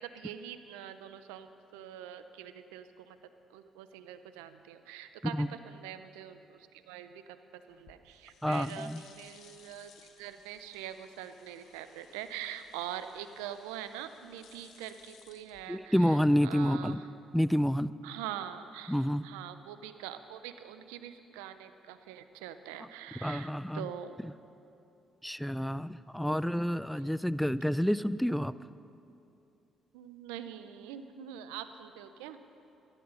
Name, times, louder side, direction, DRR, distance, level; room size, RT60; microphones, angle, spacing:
voice 1, 0.0-3.2 3.5-9.9 10.2-17.1 18.0-24.2 29.9-32.4, right 10 dB, 85° right, 11 dB, 0.6 m, -44 dB
sound 1, 7.7-16.2, left 7 dB, 70° left, 1.0 m, -60 dB
voice 2, 8.4-9.0 15.7-17.0 17.3-17.9 18.9-19.2 23.2-23.9 25.2-28.5, equal, 5° left, 17 dB, 0.4 m, -29 dB
14.0 x 11.0 x 5.7 m, 2.7 s
hypercardioid pair, 50°, 0 cm